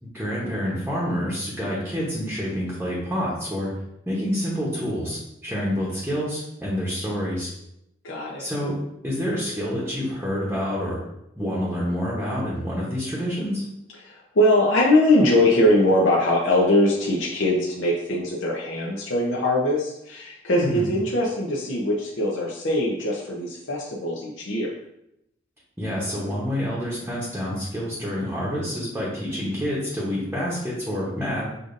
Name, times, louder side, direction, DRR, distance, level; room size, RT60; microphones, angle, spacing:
voice 1, 0.0-3.7 4.1-7.5 8.4-8.8 9.0-11.0 11.4-13.7 20.6-20.9 25.8-31.5, equal, 10° right, -6 dB, 0.9 m, -27 dB
voice 2, 8.0-8.5 14.0-24.7, left 1 dB, 70° left, -3 dB, 0.7 m, -21 dB
6.6 x 2.5 x 2.6 m, 0.82 s
head